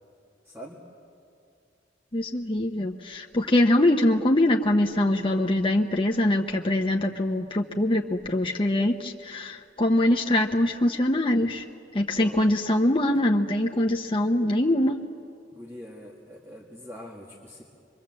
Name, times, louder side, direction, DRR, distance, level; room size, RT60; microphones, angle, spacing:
voice 1, 0.5-0.8 12.1-12.4 15.5-17.6, equal, 15° right, -1 dB, 1.8 m, -43 dB
voice 2, 2.1-11.7 11.9-15.0, left 1 dB, 30° left, 2 dB, 0.8 m, -23 dB
25.0 x 23.5 x 7.6 m, 2.4 s
head